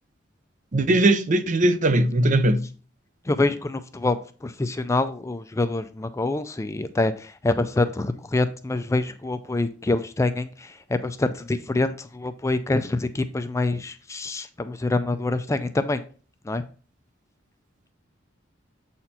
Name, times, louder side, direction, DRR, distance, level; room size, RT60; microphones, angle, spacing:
voice 1, 0.7-2.6, right 1 dB, 40° right, 0.6 m, -19 dB
voice 2, 3.3-16.0 16.5-16.6, left 2 dB, 15° left, 0.4 m, -26 dB
7.6 x 4.3 x 4.2 m
head